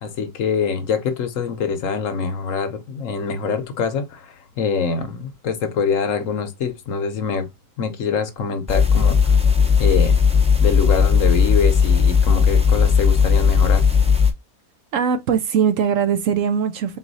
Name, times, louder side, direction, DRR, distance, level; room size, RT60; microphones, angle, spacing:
voice 1, 0.0-7.5 7.8-9.2 9.8-10.2 10.6-13.8, left 5 dB, 65° left, 1.1 m, -24 dB
sound 1, 8.7-14.3, left 6 dB, 10° right, 0.4 m, -16 dB
voice 2, 14.9-17.0, right 7 dB, 65° right, 0.9 m, -20 dB
4.1 x 2.4 x 4.0 m
omnidirectional pair, 1.6 m